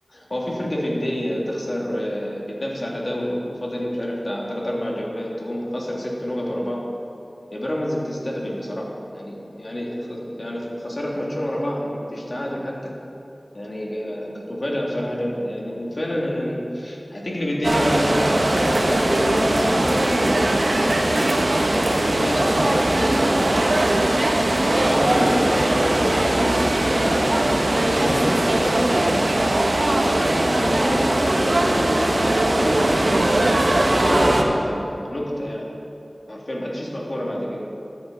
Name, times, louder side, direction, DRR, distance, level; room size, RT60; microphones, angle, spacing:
voice 1, 0.1-6.8 7.5-12.9 13.5-21.1 22.0-23.8 24.6-29.3 29.9-32.8 33.8-35.7 36.3-37.6, equal, 50° left, -3 dB, 2.4 m, -28 dB
sound 1, 17.6-34.4, right 1 dB, 65° right, 1.1 m, -20 dB
13.0 x 10.5 x 4.0 m, 2.7 s
wide cardioid pair, 50°, 0 cm